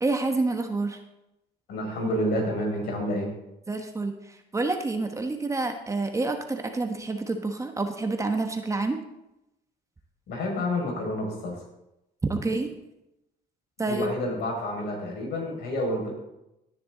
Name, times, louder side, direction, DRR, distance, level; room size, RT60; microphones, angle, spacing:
voice 1, 0.0-1.0 3.7-9.0 12.2-12.7 13.8-14.1, right 3 dB, 20° right, 5 dB, 1.2 m, -28 dB
voice 2, 1.7-3.3 10.3-11.6 13.9-16.1, left 1 dB, 70° left, 1 dB, 5.5 m, -29 dB
17.0 x 10.5 x 3.9 m, 0.90 s
cardioid pair, 110°, 17 cm